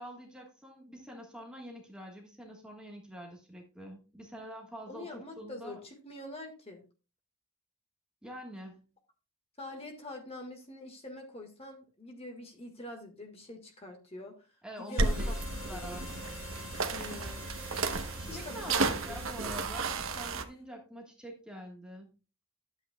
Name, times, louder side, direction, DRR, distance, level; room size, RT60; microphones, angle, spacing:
voice 1, 0.0-5.8 8.2-8.9 14.6-16.0 17.2-17.3 18.2-22.1, equal, 5° right, 0 dB, 1.4 m, -46 dB
voice 2, 4.9-6.8 9.6-14.5 14.8-15.3 15.6-16.0 16.9-17.6 18.3-19.5, left 2 dB, 25° left, 4 dB, 1.6 m, -45 dB
Harmonica, 14.9-20.5, left 3 dB, 70° left, 1.4 m, -49 dB
sound 1, 15.0-20.4, right 3 dB, 65° right, 0.9 m, -33 dB
11.5 x 8.1 x 2.3 m, 0.33 s
head